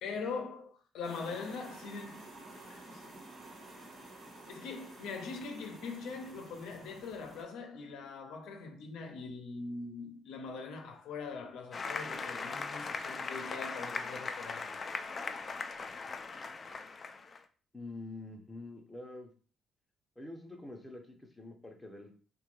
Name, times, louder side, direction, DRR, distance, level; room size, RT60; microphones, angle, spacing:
voice 1, 0.0-2.2 2.5-3.3 4.5-14.6, left 4 dB, 85° left, 0.5 m, -42 dB
sound 1, 1.0-7.4, right 2 dB, 70° right, 1.1 m, -51 dB
Applause, 11.7-17.4, left 4 dB, 40° left, 0.3 m, -39 dB
voice 2, 17.7-19.3 20.2-22.1, left 2 dB, 10° left, 0.7 m, -46 dB
2.8 x 2.3 x 3.1 m
cardioid pair, 90°, 0 cm